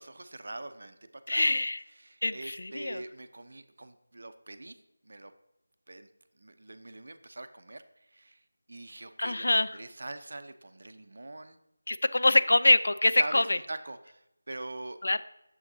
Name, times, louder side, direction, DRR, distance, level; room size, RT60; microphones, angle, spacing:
voice 1, 0.0-1.5 2.0-4.8 5.0-5.3 5.9-6.1 6.4-7.8 8.1-8.4 8.7-11.6 13.2-14.2 14.5-15.0, right 2 dB, 65° right, 10 dB, 0.6 m, -43 dB
voice 2, 1.3-1.8 2.2-3.0 9.2-9.8 11.9-13.6 15.0-15.2, left 2 dB, 70° left, 14 dB, 0.4 m, -24 dB
8.8 x 7.2 x 2.7 m, 0.86 s
figure-of-eight pair, 170°, 0 cm